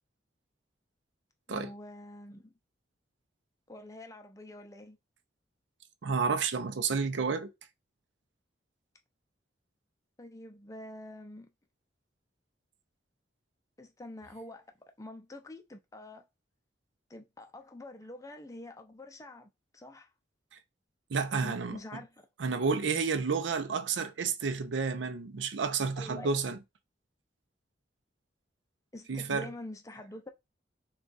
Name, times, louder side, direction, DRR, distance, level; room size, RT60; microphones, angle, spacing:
voice 1, 1.5-2.5 3.7-5.0 10.2-11.5 13.8-16.3 17.1-20.1 21.4-22.3 26.0-26.4 28.9-30.3, left 1 dB, 15° left, 0.5 m, -46 dB
voice 2, 6.0-7.5 21.1-21.8 22.4-26.6 29.1-29.5, right 5 dB, 85° right, 0.5 m, -30 dB
3.5 x 2.3 x 3.9 m
head